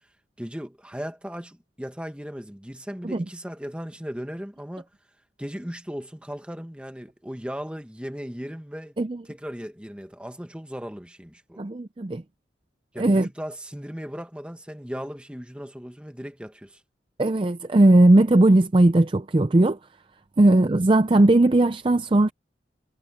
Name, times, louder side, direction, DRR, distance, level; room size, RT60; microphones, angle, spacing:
voice 1, 0.4-4.9 5.4-9.0 9.2-11.6 12.9-16.8 20.4-20.6, equal, 5° right, 1.4 m, -37 dB
voice 2, 11.6-12.2 13.0-13.3 17.2-19.8 20.4-22.3, right 2 dB, 25° right, 0.4 m, -18 dB
head